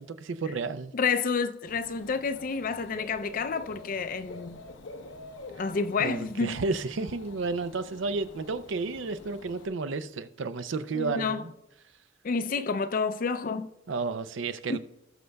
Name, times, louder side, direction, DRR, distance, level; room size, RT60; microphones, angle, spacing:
voice 1, 0.0-0.9 6.0-11.5 13.9-14.8, right 4 dB, 80° right, 0.5 m, -32 dB
voice 2, 0.9-4.6 5.6-6.6 10.9-11.4 12.2-13.7 14.7-14.8, left 5 dB, 45° left, 0.5 m, -29 dB
Dog / Bird, 1.7-9.7, left 2 dB, 75° left, 0.8 m, -47 dB
19.0 x 6.4 x 2.3 m
head